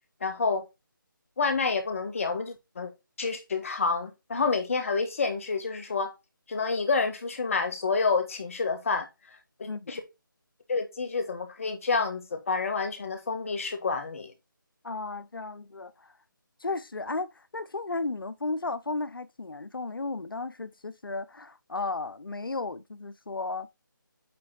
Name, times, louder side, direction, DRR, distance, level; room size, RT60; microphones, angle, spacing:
voice 1, 0.2-0.6 1.4-2.9 3.2-6.1 6.5-10.0 10.7-14.3, left 4 dB, 40° left, 1.3 m, -29 dB
voice 2, 9.7-10.0 14.8-16.1 16.6-23.7, left 3 dB, 80° left, 0.7 m, -34 dB
8.6 x 3.3 x 4.2 m
figure-of-eight pair, 160°, 11 cm